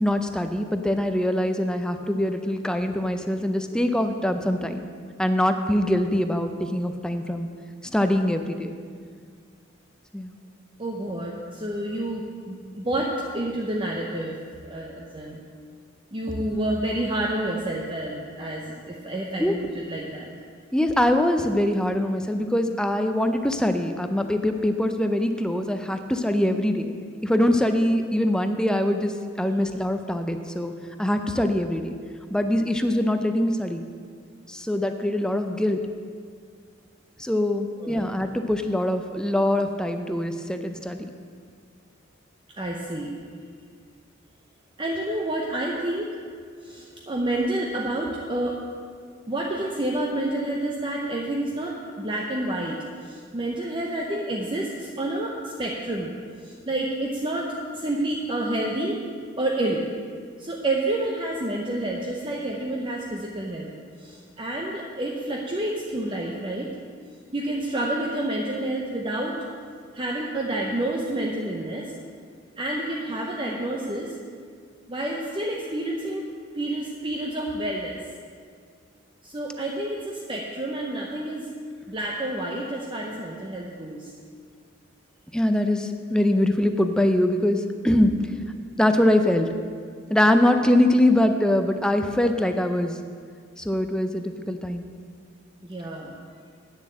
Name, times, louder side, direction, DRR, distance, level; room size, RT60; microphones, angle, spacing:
voice 1, 0.0-4.8 5.2-7.5 7.8-8.7 10.1-10.4 19.4-19.6 20.7-26.9 27.2-29.1 29.4-30.7 31.0-31.9 32.3-33.8 34.5-35.8 37.2-41.1 85.3-88.1 88.8-89.5 90.1-93.0 93.6-94.9, left 1 dB, 5° left, 7 dB, 0.5 m, -23 dB
voice 2, 10.8-14.4 14.6-15.4 16.1-19.6 19.9-20.3 37.8-38.1 42.6-43.2 44.8-46.1 46.6-48.6 49.3-56.1 56.4-59.0 59.4-59.8 60.4-63.7 64.0-66.7 67.3-69.4 69.9-71.9 72.6-74.1 74.9-76.2 76.5-78.0 79.2-81.5 81.9-84.1 95.6-96.1, right 1 dB, 25° right, -1 dB, 0.7 m, -29 dB
9.1 x 7.1 x 7.5 m, 2.1 s
head